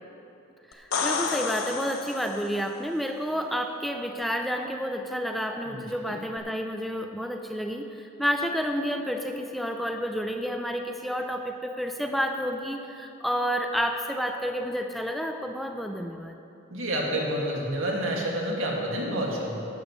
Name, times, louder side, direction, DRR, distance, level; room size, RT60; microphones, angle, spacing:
sound 1, 0.7-2.6 6.4-6.5, left 4 dB, 85° left, 0.9 m, -30 dB
voice 1, 0.7-16.4, equal, ahead, 4 dB, 0.4 m, -30 dB
voice 2, 5.7-6.2 16.7-19.7, right 1 dB, 80° right, -2 dB, 2.1 m, -29 dB
15.0 x 11.5 x 3.2 m, 2.7 s
head